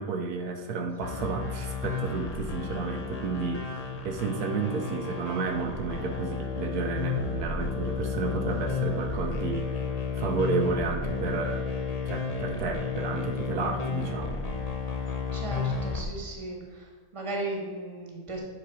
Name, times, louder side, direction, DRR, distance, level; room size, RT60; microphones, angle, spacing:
voice 1, 0.0-11.7 12.0-14.4, right 4 dB, 80° right, 4 dB, 1.2 m, -32 dB
sound 1, 1.0-16.0, left 5 dB, 40° left, 0.6 m, -32 dB
voice 2, 13.1-13.4 15.3-16.9 17.1-18.4, right 2 dB, 20° right, -1 dB, 1.4 m, -36 dB
8.5 x 4.4 x 4.1 m, 1.5 s
omnidirectional pair, 1.6 m